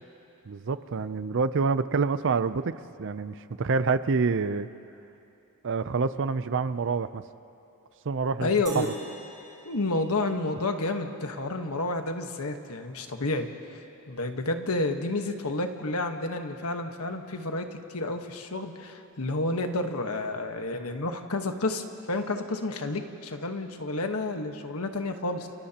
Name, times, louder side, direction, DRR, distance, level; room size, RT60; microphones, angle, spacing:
voice 1, 0.5-2.7 3.0-4.7 5.6-7.2 8.1-8.9, right 4 dB, 55° right, 13 dB, 0.5 m, -27 dB
voice 2, 8.4-8.9 9.6-13.5 14.1-25.5, left 2 dB, 75° left, 5 dB, 1.3 m, -30 dB
sound 1, 8.7-11.1, right 3 dB, 20° right, 3.2 m, -46 dB
30.0 x 29.5 x 2.9 m, 2.8 s
head